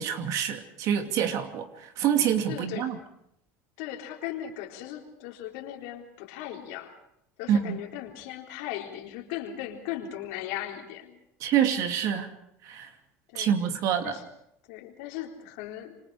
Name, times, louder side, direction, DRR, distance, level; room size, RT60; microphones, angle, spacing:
voice 1, 0.0-3.0 7.5-7.8 11.4-12.3 12.6-12.9 13.3-14.1, right 9 dB, 65° right, 6 dB, 2.6 m, -26 dB
voice 2, 2.5-2.9 3.8-6.9 7.4-11.2 13.3-13.6 14.0-14.3 14.7-15.9, left 12 dB, 80° left, 2 dB, 3.9 m, -38 dB
27.0 x 24.5 x 5.0 m, 0.74 s
supercardioid pair, 95°, 6 cm